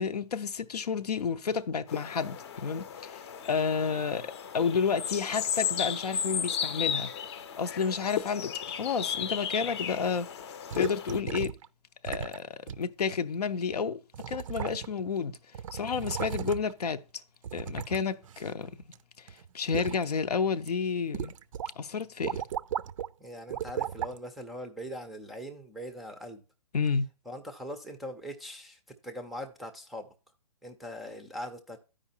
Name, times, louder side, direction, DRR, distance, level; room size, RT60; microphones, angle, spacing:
voice 1, 0.0-7.1 7.6-10.3 10.7-11.6 12.0-14.0 14.3-15.4 15.7-17.0 17.5-18.8 19.2-21.3 21.8-22.4 26.7-27.1, left 6 dB, 80° left, 0.6 m, -31 dB
sound 1, 1.9-11.2, left 8 dB, 45° left, 0.7 m, -35 dB
sound 2, 10.7-11.7 12.0-12.4 12.7-12.8 13.7-13.8 14.1-15.1 15.3-16.8 17.4-19.0 19.3-20.0 20.5-20.7 21.1-21.7 22.0-23.1 23.5-24.2 24.9-25.0, right 9 dB, 55° right, 0.4 m, -36 dB
voice 2, 23.2-26.4 27.3-30.1 30.6-31.8, equal, ahead, 0.4 m, -41 dB
13.5 x 5.0 x 2.7 m
hypercardioid pair, 140°, 20 cm